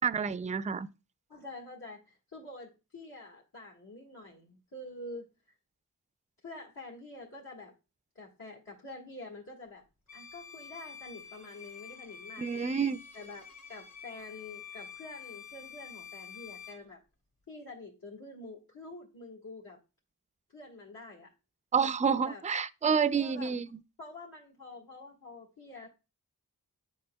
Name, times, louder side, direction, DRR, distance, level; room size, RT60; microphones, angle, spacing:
voice 1, 0.0-0.9 12.4-13.0 21.7-23.7, right 6 dB, 20° right, 0.4 m, -28 dB
voice 2, 1.3-5.3 6.4-7.7 8.2-9.8 10.1-12.7 13.1-17.0 17.5-19.8 20.5-21.3 22.2-22.4 23.1-23.5 24.0-25.9, left 2 dB, 70° left, 1.7 m, -47 dB
Bowed string instrument, 10.1-16.9, left 8 dB, 50° left, 1.9 m, -48 dB
9.6 x 4.9 x 2.2 m
wide cardioid pair, 55°, 36 cm